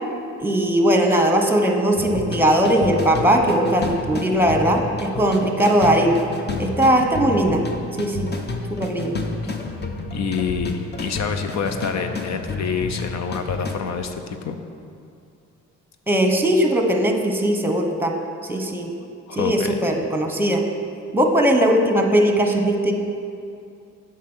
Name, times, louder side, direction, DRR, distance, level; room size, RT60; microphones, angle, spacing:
voice 1, 0.4-6.2 6.6-7.6 8.0-8.3 8.7-9.2 16.1-18.1 18.5-18.9 19.3-20.6 21.1-22.9, right 1 dB, 5° right, 3 dB, 1.2 m, -19 dB
sound 1, 2.0-13.8, left 3 dB, 35° left, 1.0 m, -30 dB
voice 2, 10.1-14.6 19.3-19.8, left 6 dB, 65° left, 7 dB, 0.8 m, -27 dB
8.3 x 6.0 x 6.3 m, 2.5 s
cardioid pair, 90°, 30 cm